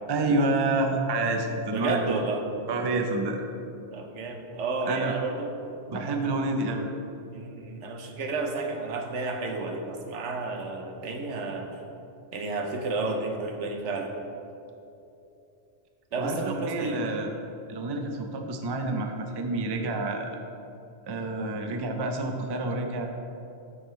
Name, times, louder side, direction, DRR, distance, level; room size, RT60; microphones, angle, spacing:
voice 1, 0.1-2.2 2.7-3.4 4.9-5.1 5.9-6.9 16.2-17.3 17.7-20.3 21.0-23.1, right 2 dB, 35° right, 4 dB, 0.4 m, -28 dB
voice 2, 1.7-2.4 3.9-5.5 6.2-6.5 7.3-11.8 12.3-14.1 16.1-17.0, right 3 dB, 85° right, 3 dB, 1.1 m, -31 dB
8.4 x 7.1 x 3.1 m, 2.8 s
omnidirectional pair, 1.2 m